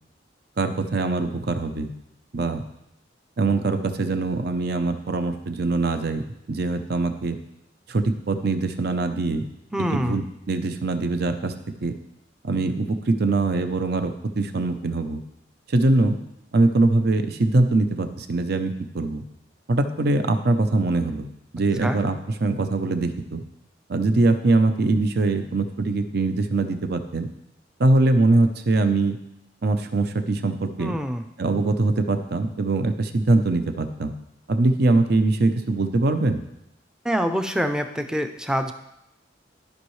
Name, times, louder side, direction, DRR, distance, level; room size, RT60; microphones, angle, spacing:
voice 1, 0.6-1.9 2.3-2.6 3.4-6.2 6.5-7.4 7.9-9.4 9.9-11.5 11.8-11.9 12.4-15.2 15.7-16.2 16.5-19.2 19.7-21.3 21.5-23.4 23.9-27.3 27.8-29.2 29.6-30.9 31.4-34.1 34.5-36.4, right 2 dB, 60° right, 8 dB, 0.7 m, -22 dB
voice 2, 9.7-10.2 21.8-22.0 30.8-31.2 37.0-38.7, equal, 5° right, 7 dB, 0.5 m, -25 dB
13.0 x 5.5 x 3.2 m, 0.83 s
head